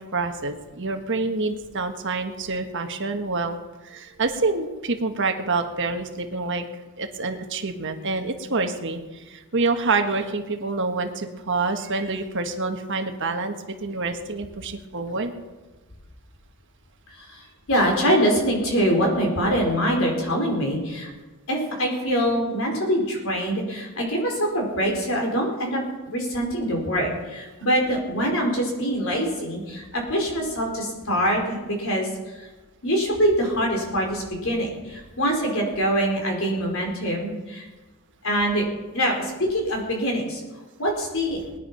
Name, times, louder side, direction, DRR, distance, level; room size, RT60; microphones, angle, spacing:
voice 1, 0.0-3.6 3.8-6.7 7.0-15.3, right 3 dB, 55° right, 5 dB, 1.5 m, -27 dB
voice 2, 17.1-21.1 21.5-32.1 32.8-37.6 38.2-38.6 38.9-40.4 40.8-41.4, equal, 65° left, 0 dB, 4.6 m, -24 dB
20.5 x 10.5 x 5.7 m, 1.2 s
head